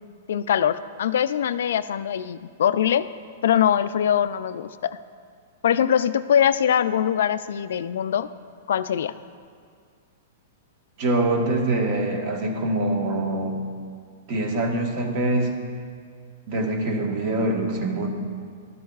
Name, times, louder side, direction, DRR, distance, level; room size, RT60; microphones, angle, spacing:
voice 1, 0.3-3.0 3.4-5.0 5.6-8.3 8.7-9.1, left 9 dB, 75° left, 13 dB, 0.3 m, -22 dB
voice 2, 11.0-13.6 14.3-15.5 16.5-18.1, right 2 dB, 40° right, 2 dB, 1.3 m, -24 dB
12.5 x 12.5 x 2.4 m, 2.1 s
hypercardioid pair, 155°, 0 cm